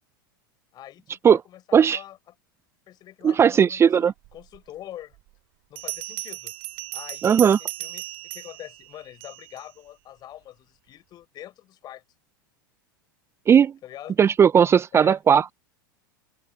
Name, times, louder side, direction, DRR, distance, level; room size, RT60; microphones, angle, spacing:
voice 1, 0.7-2.3 2.9-5.2 5.7-6.5 6.9-12.0 13.8-14.3 14.9-15.2, left 12 dB, 40° left, 7.4 m, -44 dB
voice 2, 3.2-4.1 7.2-7.6 13.5-13.7 14.2-15.5, right 8 dB, 25° right, 0.7 m, -17 dB
Bell, 4.5-4.6 5.8-9.6, right 19 dB, 50° right, 3.3 m, -36 dB
open air
hypercardioid pair, 90°, 11 cm